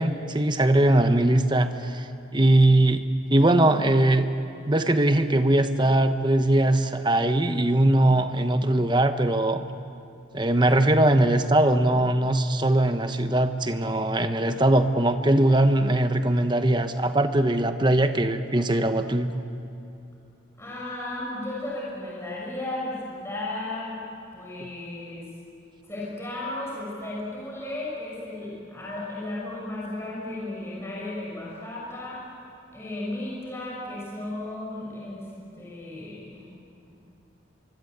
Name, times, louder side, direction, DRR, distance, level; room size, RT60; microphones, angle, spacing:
voice 1, 0.0-2.0 2.3-3.0 3.3-4.3 4.7-9.7 10.3-19.3, right 1 dB, 20° right, 8 dB, 1.1 m, -21 dB
voice 2, 20.6-24.0 24.3-25.2 25.9-32.2 32.7-35.3 35.5-36.4, left 2 dB, 15° left, -6 dB, 6.5 m, -34 dB
25.5 x 24.0 x 8.1 m, 2.7 s
head